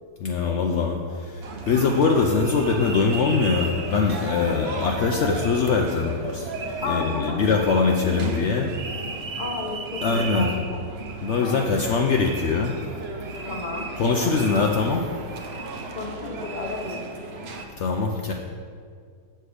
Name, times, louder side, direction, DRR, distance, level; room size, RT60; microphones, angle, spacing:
voice 1, 0.2-6.5 6.8-8.7 10.0-10.5 11.2-12.8 14.0-15.1 17.8-18.3, left 4 dB, 70° left, 2 dB, 0.6 m, -22 dB
sound 1, 1.4-17.7, right 2 dB, 50° right, 0.8 m, -35 dB
voice 2, 6.8-8.4 9.4-10.8 11.4-12.1 13.5-13.9 15.9-17.0, left 3 dB, 35° left, 1 dB, 0.8 m, -33 dB
7.9 x 6.6 x 4.9 m, 2.1 s
omnidirectional pair, 1.8 m